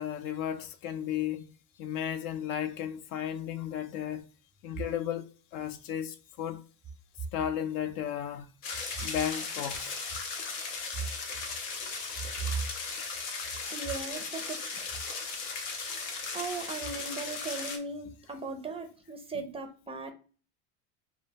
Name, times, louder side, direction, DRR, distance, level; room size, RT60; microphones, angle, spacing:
voice 1, 0.0-1.5 1.8-4.3 4.6-6.6 7.3-8.5 9.0-10.0 13.8-13.9 15.4-15.6, left 10 dB, 60° left, 0.5 m, -34 dB
sound 1, 8.6-17.8, left 4 dB, 85° left, 0.9 m, -37 dB
voice 2, 13.7-14.8 16.3-20.1, right 4 dB, 15° right, 0.4 m, -37 dB
2.1 x 2.1 x 3.3 m
supercardioid pair, 120°, 39 cm